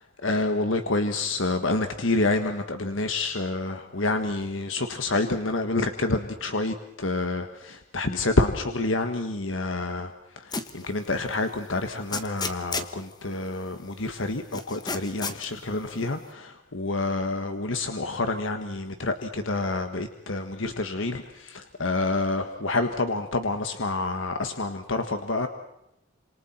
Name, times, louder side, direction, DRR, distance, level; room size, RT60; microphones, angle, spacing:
voice 1, 0.2-25.5, left 2 dB, 80° left, 7 dB, 1.5 m, -28 dB
sound 1, 10.5-10.8 11.3-11.4 12.1-13.0 14.5-15.4, left 4 dB, 20° left, 1.3 m, -31 dB
28.0 x 27.0 x 4.4 m, 0.84 s
head